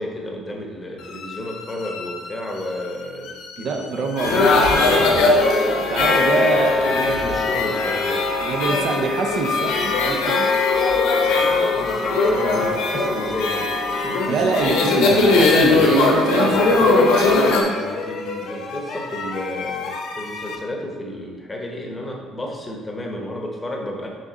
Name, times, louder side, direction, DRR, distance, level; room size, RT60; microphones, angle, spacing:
voice 1, 0.0-3.3 3.6-3.7 4.0-4.4 4.7-5.1 5.9-8.2 11.2-14.3 16.4-16.9 17.7-24.1, left 1 dB, 10° left, 0 dB, 0.9 m, -32 dB
sound 1, 1.0-20.6, left 4 dB, 70° left, 0.8 m, -35 dB
voice 2, 3.6-4.5 4.8-5.4 5.9-7.0 8.4-10.5 12.6-12.7 14.3-17.6, right 4 dB, 50° right, 4 dB, 0.5 m, -25 dB
sound 2, 4.2-17.6, left 3 dB, 90° left, 1.2 m, -19 dB
6.3 x 3.6 x 5.1 m, 1.5 s
cardioid pair, 160°, 0 cm